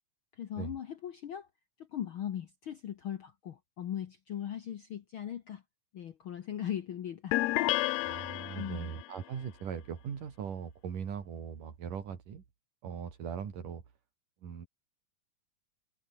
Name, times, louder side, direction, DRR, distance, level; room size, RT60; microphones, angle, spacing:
voice 1, 0.3-1.5 1.8-5.6 5.9-7.4 8.5-8.9, left 10 dB, 60° left, 1.4 m, -39 dB
sound 1, 7.3-9.1, left 17 dB, 75° left, 1.6 m, -31 dB
voice 2, 8.0-12.4 12.8-13.8 14.4-14.7, right 7 dB, 85° right, 4.6 m, -40 dB
omnidirectional pair, 3.6 m